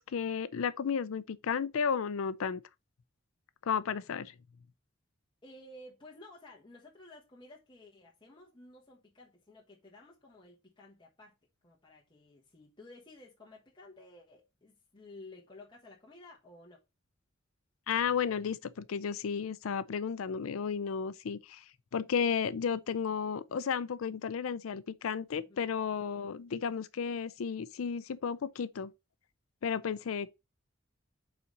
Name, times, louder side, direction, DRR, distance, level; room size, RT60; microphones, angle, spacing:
voice 1, 0.0-2.6 3.7-4.3 17.9-21.6 21.9-28.9 29.6-30.3, left 6 dB, 90° left, 0.4 m, -33 dB
voice 2, 5.4-11.3 11.6-16.8 25.3-25.7, left 2 dB, 25° left, 1.4 m, -54 dB
5.6 x 4.1 x 5.2 m
head